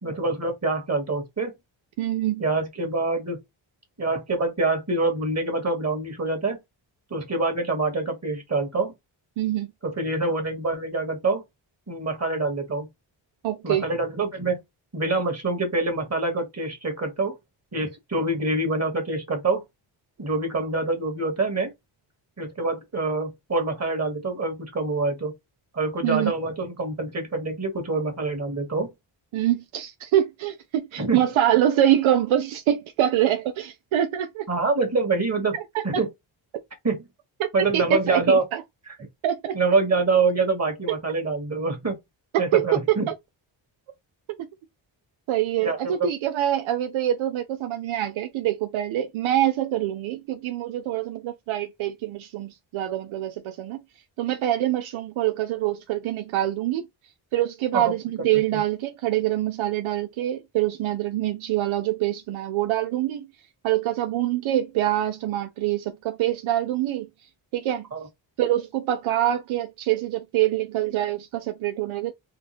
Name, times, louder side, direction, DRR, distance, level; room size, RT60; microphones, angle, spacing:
voice 1, 0.0-1.5 2.4-3.4 4.0-6.6 7.1-8.9 9.8-11.4 11.9-12.9 13.6-14.6 14.9-17.3 17.7-19.6 20.2-21.7 22.4-25.3 25.7-28.9 31.0-31.2 34.5-35.5 35.8-36.1 36.8-37.0 37.5-38.4 39.5-42.0 42.4-43.1 45.6-46.1 57.7-57.9 58.5-58.6 67.9-68.1, right 3 dB, 35° right, 1.6 m, -25 dB
voice 2, 2.0-2.4 9.4-9.7 13.4-13.8 26.0-26.3 29.3-34.5 35.5-35.8 37.4-38.6 39.2-39.6 40.9-41.0 42.3-43.1 45.3-53.8 54.2-56.9 57.3-63.3 63.6-67.1 67.5-67.9 68.4-72.1, right 12 dB, 85° right, 0.6 m, -25 dB
3.6 x 2.4 x 3.0 m
cardioid pair, 75°, 47 cm